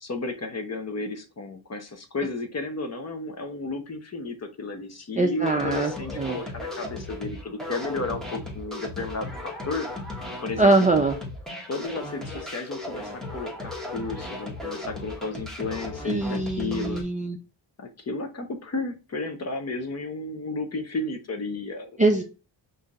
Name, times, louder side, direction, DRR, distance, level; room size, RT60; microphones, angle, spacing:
voice 1, 0.0-9.9 10.4-10.7 11.7-17.0 17.8-22.0, left 3 dB, 35° left, 6 dB, 0.7 m, -33 dB
voice 2, 5.2-6.4 10.6-11.2 16.1-17.4 22.0-22.2, right 2 dB, 20° right, 2 dB, 0.4 m, -22 dB
sound 1, 5.4-17.0, left 2 dB, ahead, 1.0 m, -36 dB
5.6 x 2.7 x 2.3 m, 0.32 s
wide cardioid pair, 145°, 48 cm